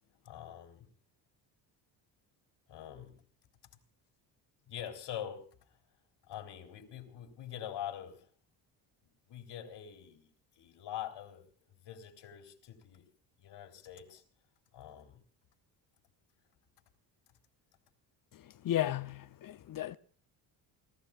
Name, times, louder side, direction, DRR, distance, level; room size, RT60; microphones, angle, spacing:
voice 1, 0.2-0.9 2.7-3.2 4.7-5.5 6.3-8.3 9.0-10.3 10.6-13.1 13.4-14.2 14.7-15.2, left 10 dB, 60° left, 3.9 m, -44 dB
voice 2, 18.6-20.0, left 12 dB, 45° left, 0.8 m, -34 dB
29.0 x 17.5 x 2.5 m
cardioid pair, 100°, 46 cm